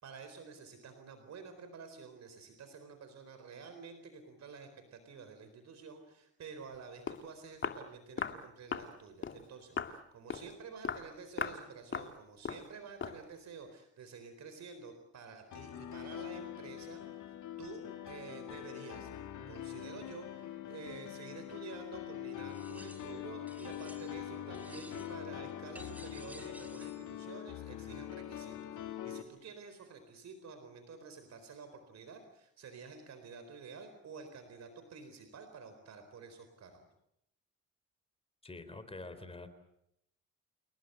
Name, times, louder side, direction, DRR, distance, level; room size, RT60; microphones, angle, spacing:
voice 1, 0.0-17.2 17.6-19.1 19.5-36.9, right 5 dB, 60° right, 8 dB, 4.3 m, -50 dB
Walk footsteps, 6.7-6.8 7.1-7.2 7.6-7.8 8.2-8.4 8.7-8.9 9.2-9.4 9.8-10.0 10.3-10.5 10.8-11.1 11.4-11.6 11.9-12.1 12.4-12.7 13.0-13.2, left 5 dB, 40° left, 2.4 m, -37 dB
Piano, 15.5-29.2, left 11 dB, 75° left, 2.7 m, -44 dB
sound 1, 22.5-23.2 23.5-24.3 24.5-25.3 25.7-27.1, equal, 5° right, 4.7 m, -54 dB
voice 2, 38.4-39.5, left 2 dB, 20° left, 11 dB, 3.9 m, -46 dB
29.5 x 19.0 x 8.0 m, 0.77 s
cardioid pair, 90°, 30 cm